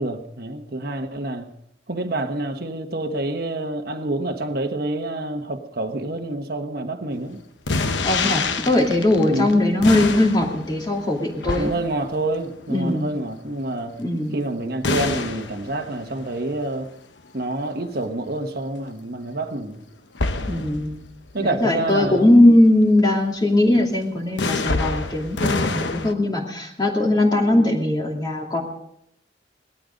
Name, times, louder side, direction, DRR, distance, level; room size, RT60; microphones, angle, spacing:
voice 1, 0.0-1.5 1.9-7.4 8.2-8.8 9.3-9.7 11.6-14.0 14.3-16.9 17.3-19.8 20.4-20.7 21.3-22.3, right 2 dB, 55° right, 4 dB, 1.3 m, -28 dB
sound 1, 7.7-13.5 14.8-16.4 20.1-21.3 22.0-22.2 24.4-26.1, left 3 dB, 80° left, 1.0 m, -27 dB
voice 2, 8.0-11.7 12.7-13.1 14.0-14.4 20.5-21.0 21.4-28.6, left 1 dB, 25° left, 0 dB, 2.7 m, -19 dB
18.5 x 13.0 x 5.2 m, 0.76 s
head